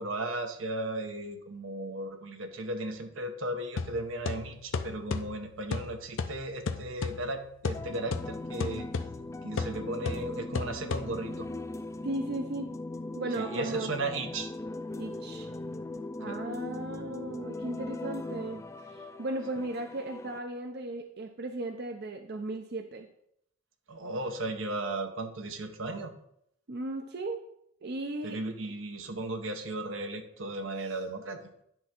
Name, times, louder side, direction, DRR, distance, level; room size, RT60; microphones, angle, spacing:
voice 1, 0.0-8.9 9.4-11.5 13.4-14.5 16.3-16.4 23.9-26.1 28.2-31.4, right 2 dB, 80° right, 6 dB, 1.0 m, -36 dB
sound 1, 3.8-11.5, left 4 dB, 80° left, 0.6 m, -36 dB
sound 2, 7.7-20.4, left 2 dB, 15° left, 0.3 m, -40 dB
voice 2, 12.0-12.7 13.2-13.9 15.0-15.5 16.2-23.1 26.7-27.4 27.8-28.4 30.8-30.9, right 2 dB, 55° right, 5 dB, 0.6 m, -36 dB
10.5 x 3.5 x 5.8 m, 0.74 s
head